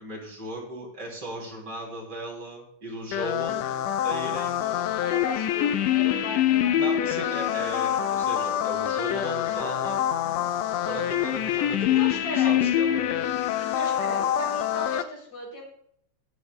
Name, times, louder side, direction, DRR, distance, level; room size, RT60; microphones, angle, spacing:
voice 1, 0.0-3.7 4.0-5.0 6.7-10.0 10.9-12.1 12.3-13.4, right 1 dB, 35° right, -1 dB, 3.5 m, -37 dB
sound 1, 3.1-15.0, left 11 dB, 75° left, 1.7 m, -25 dB
voice 2, 5.0-7.3 11.8-12.7 13.4-15.7, left 2 dB, 50° left, 0 dB, 4.5 m, -36 dB
23.0 x 8.1 x 2.2 m, 0.67 s
omnidirectional pair, 3.4 m